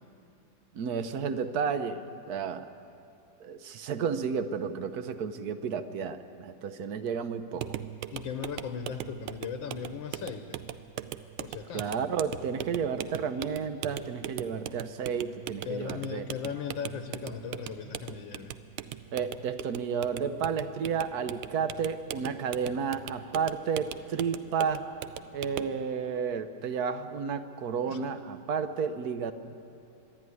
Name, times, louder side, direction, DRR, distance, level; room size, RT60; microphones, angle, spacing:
voice 1, 0.7-2.7 3.4-7.7 11.7-16.2 19.1-24.8 25.3-29.3, right 6 dB, 60° right, 10 dB, 1.2 m, -32 dB
sound 1, 7.6-25.8, right 12 dB, 85° right, 1.5 m, -40 dB
voice 2, 8.1-10.6 11.4-12.0 15.6-18.6 27.9-28.0, left 7 dB, 70° left, 8 dB, 1.6 m, -37 dB
25.5 x 11.0 x 9.6 m, 2.6 s
omnidirectional pair, 2.2 m